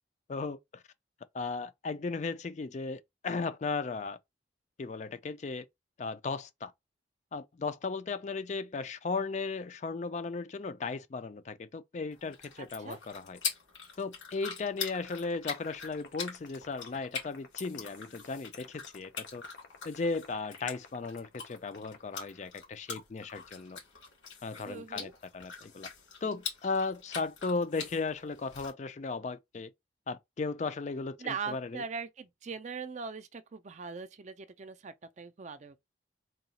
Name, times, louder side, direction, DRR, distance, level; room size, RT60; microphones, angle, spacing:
voice 1, 0.3-0.8 1.3-4.2 4.8-5.7 6.0-6.7 7.3-13.4 14.0-19.4 19.8-23.8 24.4-25.9 26.2-29.7 30.1-31.8, left 4 dB, 40° left, 0.4 m, -36 dB
sound 1, 12.1-28.7, left 6 dB, 90° left, 2.6 m, -43 dB
voice 2, 12.6-13.0 24.7-25.1 31.2-35.8, right 5 dB, 40° right, 0.4 m, -41 dB
sound 2, 14.9-22.5, left 5 dB, 65° left, 1.0 m, -50 dB
3.8 x 2.3 x 4.1 m
head